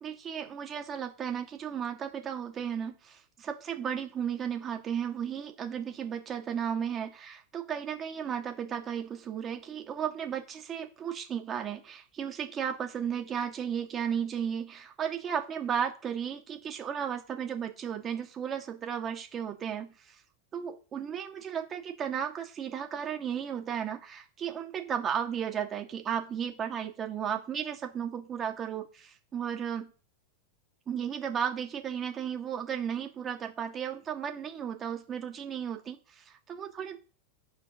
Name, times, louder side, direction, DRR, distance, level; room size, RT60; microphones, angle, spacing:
voice 1, 0.0-20.2 20.5-29.9 30.9-37.0, right 8 dB, 30° right, 3 dB, 2.4 m, -34 dB
11.5 x 5.1 x 5.3 m, 0.37 s
hypercardioid pair, 90°, 0 cm